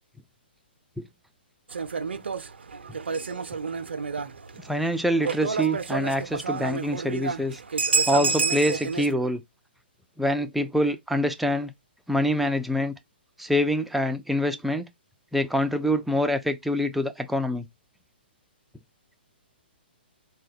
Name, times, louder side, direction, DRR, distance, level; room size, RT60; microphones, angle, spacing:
sound 1, 1.7-9.1, right 4 dB, 90° right, 0.4 m, -29 dB
voice 1, 4.6-7.6 8.1-9.4 10.2-11.7 12.1-12.9 13.4-14.9 15.3-17.7, equal, ahead, 0.4 m, -25 dB
3.7 x 2.2 x 3.9 m
hypercardioid pair, 130°, 6 cm